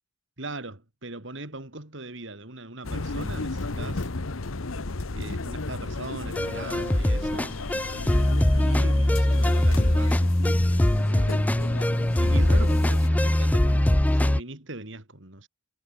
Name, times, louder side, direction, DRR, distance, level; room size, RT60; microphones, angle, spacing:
voice 1, 0.4-4.1 5.1-7.6 7.9-10.3 11.1-11.6 12.1-15.5, right 2 dB, 60° right, 2.9 m, -40 dB
sound 1, 2.8-13.1, left 3 dB, 80° left, 1.1 m, -34 dB
sound 2, 6.4-14.4, left 1 dB, 5° left, 0.4 m, -22 dB
head